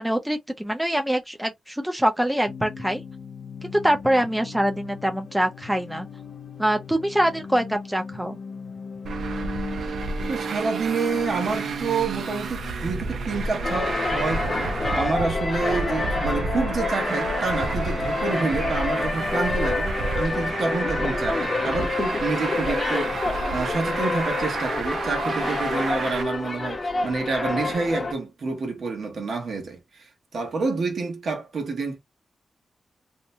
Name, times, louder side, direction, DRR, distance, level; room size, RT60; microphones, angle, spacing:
voice 1, 0.0-3.0 3.6-6.1 6.6-8.4, right 1 dB, 5° right, 0.5 m, -24 dB
sound 1, 2.5-19.5, left 6 dB, 85° left, 0.3 m, -40 dB
Traffic noise roadway noise, 9.0-26.2, right 4 dB, 90° right, 0.4 m, -31 dB
voice 2, 10.3-23.2 23.5-32.0, right 4 dB, 65° right, 1.0 m, -28 dB
sound 2, 13.6-28.1, left 3 dB, 35° left, 0.7 m, -28 dB
2.8 x 2.1 x 2.6 m
wide cardioid pair, 120°, 0 cm